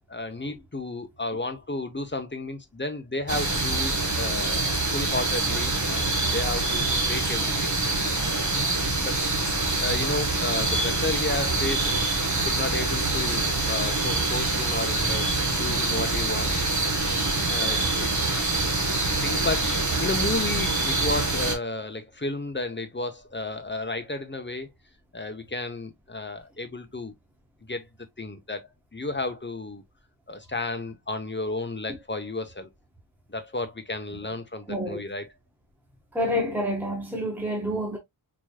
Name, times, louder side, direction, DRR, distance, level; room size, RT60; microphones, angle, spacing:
voice 1, 0.1-8.5 9.0-9.2 9.8-12.0 12.4-16.5 17.5-18.1 18.6-18.7 19.2-24.7 25.1-27.1 27.7-27.9 28.2-29.8 30.3-32.7 33.3-35.3, left 2 dB, 25° left, 0.9 m, -32 dB
sound 1, 3.3-21.6, right 2 dB, 40° right, 1.2 m, -25 dB
voice 2, 8.6-9.0 34.7-35.0 36.1-38.0, equal, 5° right, 1.4 m, -29 dB
4.9 x 3.0 x 2.3 m
wide cardioid pair, 60°, 46 cm